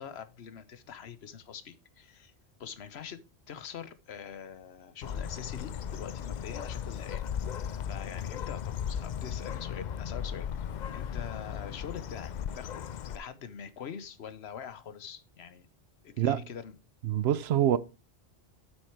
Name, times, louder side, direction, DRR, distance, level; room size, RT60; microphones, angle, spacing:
voice 1, 0.0-2.3 2.6-3.2 3.5-7.2 7.9-10.5 10.9-15.7 16.0-16.7, left 8 dB, 80° left, 1.1 m, -44 dB
Bird, 5.0-13.2, left 8 dB, 55° left, 0.5 m, -36 dB
voice 2, 17.0-17.8, right 10 dB, 75° right, 0.9 m, -25 dB
7.9 x 6.3 x 4.5 m
omnidirectional pair, 1.1 m